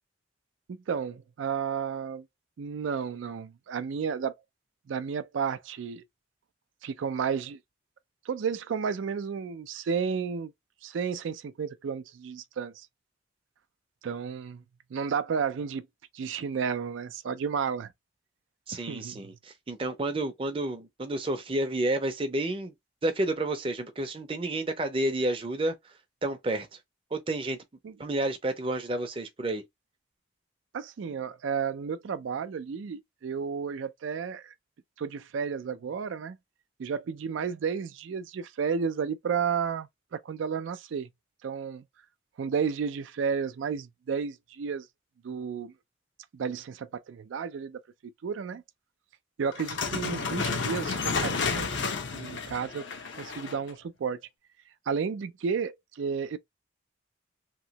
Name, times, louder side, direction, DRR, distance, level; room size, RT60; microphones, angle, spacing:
voice 1, 0.7-2.3 2.6-4.4 4.9-6.0 6.8-7.6 8.2-10.5 10.8-12.9 14.0-14.6 14.9-15.9 16.1-17.9 18.7-19.2 27.8-28.0 30.7-34.5 35.0-36.4 36.8-41.1 41.4-41.8 42.4-44.9 45.2-45.7 46.3-48.6 49.4-51.7 52.1-52.9 53.2-54.2 54.9-56.4, right 6 dB, 85° right, 0.4 m, -32 dB
voice 2, 18.7-22.7 23.0-25.8 26.2-26.7 27.1-27.6 28.0-29.6, right 1 dB, 30° right, 0.5 m, -30 dB
sound 1, 49.5-53.7, left 5 dB, 70° left, 0.7 m, -31 dB
3.0 x 2.7 x 2.8 m
head